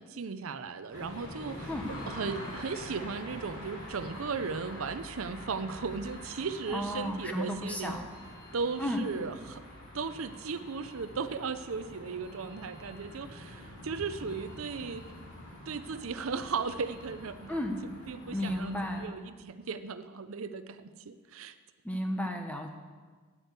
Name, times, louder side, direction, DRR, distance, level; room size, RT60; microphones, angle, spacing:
voice 1, 0.0-1.7 2.1-8.1 8.5-9.6 9.9-15.0 15.7-17.6 18.1-18.7 19.0-21.5, right 5 dB, 70° right, 11 dB, 0.6 m, -36 dB
sound 1, 0.9-19.1, left 1 dB, 85° left, 3.6 m, -46 dB
voice 2, 6.7-8.0 8.8-9.0 17.5-17.8 18.3-19.1 21.8-22.7, left 1 dB, 5° left, 4 dB, 1.0 m, -33 dB
9.9 x 8.8 x 8.1 m, 1.5 s
head